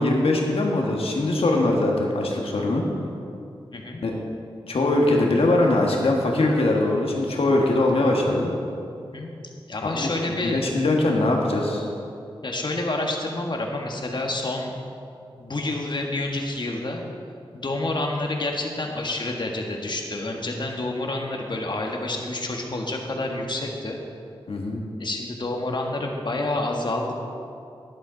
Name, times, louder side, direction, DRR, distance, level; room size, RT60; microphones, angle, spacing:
voice 1, 0.0-2.8 4.0-4.1 4.7-8.5 9.9-10.1 10.4-11.9 24.5-24.8, left 2 dB, 80° left, 0 dB, 1.6 m, -21 dB
voice 2, 3.7-4.0 8.9-9.3 9.7-10.6 12.4-14.7 15.4-17.0 17.5-24.0 25.0-27.1, left 2 dB, 50° left, 1 dB, 1.6 m, -28 dB
11.5 x 10.5 x 4.0 m, 2.5 s
cardioid pair, 55°, 10 cm